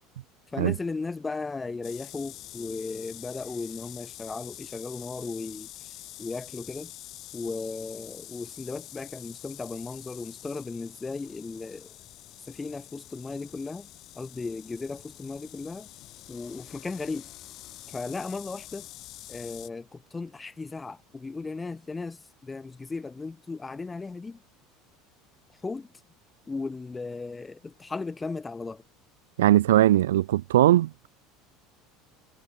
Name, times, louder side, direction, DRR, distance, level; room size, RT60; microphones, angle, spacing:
voice 1, 0.5-5.7 6.2-6.9 7.3-11.9 12.5-13.9 14.2-15.9 16.3-17.3 17.9-18.9 19.3-24.4 25.6-25.9 26.5-28.8, left 3 dB, 15° left, 5.5 m, -36 dB
sound 1, 1.8-19.7, left 15 dB, 45° left, 1.4 m, -46 dB
voice 2, 29.4-30.9, right 13 dB, 65° right, 0.9 m, -20 dB
figure-of-eight pair, 70°, 0 cm